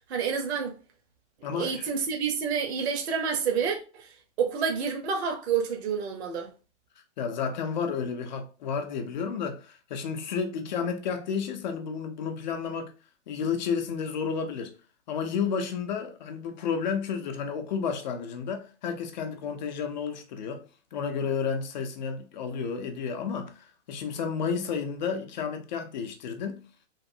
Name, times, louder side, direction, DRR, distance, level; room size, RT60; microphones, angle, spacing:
voice 1, 0.1-0.7 1.5-6.5, right 6 dB, 60° right, 0.9 m, -29 dB
voice 2, 1.4-1.9 7.2-12.9 13.3-14.7 15.1-20.6 20.9-26.6, left 6 dB, 40° left, 0.5 m, -31 dB
3.1 x 2.5 x 2.6 m
hypercardioid pair, 150°, 36 cm